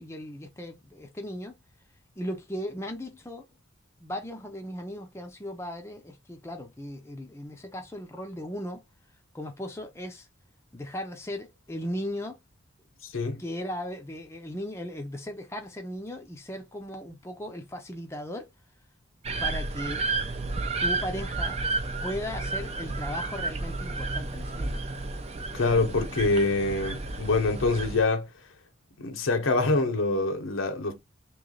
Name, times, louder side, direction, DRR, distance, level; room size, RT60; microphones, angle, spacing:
voice 1, 0.0-1.6 2.2-3.4 4.0-8.8 9.3-10.3 10.7-12.4 13.4-18.5 19.4-20.1 20.8-21.6 22.0-24.8, left 1 dB, 15° left, 0.6 m, -37 dB
voice 2, 13.0-13.4 25.5-28.3 29.0-31.0, left 3 dB, 70° left, 0.7 m, -25 dB
sound 1, 19.2-28.0, right 3 dB, 30° right, 0.5 m, -32 dB
3.2 x 3.0 x 3.7 m
head